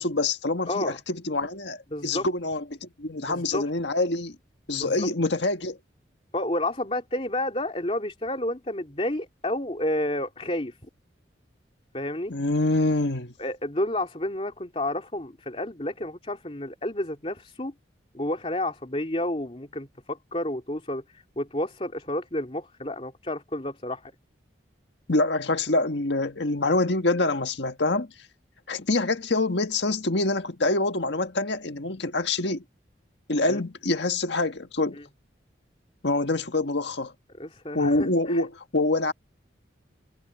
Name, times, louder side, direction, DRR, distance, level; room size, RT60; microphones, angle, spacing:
voice 1, 0.0-4.3 4.7-5.8 12.3-13.3 25.1-28.1 28.7-32.6 33.3-35.0 36.0-37.1 37.7-39.1, left 2 dB, 70° left, 1.6 m, -26 dB
voice 2, 0.7-1.0 1.9-2.3 3.1-3.7 4.7-5.1 6.3-10.7 11.9-12.3 13.4-17.7 18.1-21.0 21.4-24.1 33.5-33.6 37.4-38.4, left 1 dB, 30° left, 2.8 m, -30 dB
head